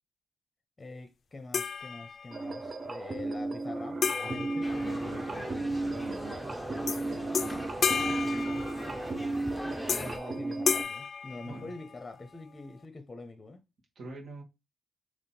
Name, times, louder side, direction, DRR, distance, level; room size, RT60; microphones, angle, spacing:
voice 1, 0.8-5.3 8.4-9.1 9.9-13.6, left 3 dB, 25° left, 0.8 m, -45 dB
sound 1, 1.5-2.5 4.0-5.6 6.9-7.0 7.3-9.2 9.9-10.3 10.7-12.1, left 6 dB, 55° left, 0.3 m, -33 dB
sound 2, 2.3-10.8, right 2 dB, 40° right, 0.6 m, -34 dB
sound 3, 4.6-10.2, equal, ahead, 0.8 m, -41 dB
voice 2, 4.8-6.6 7.0-7.7 11.5-11.7 14.0-14.4, right 2 dB, 60° right, 1.7 m, -46 dB
3.6 x 3.1 x 4.2 m
cardioid pair, 75°, 0 cm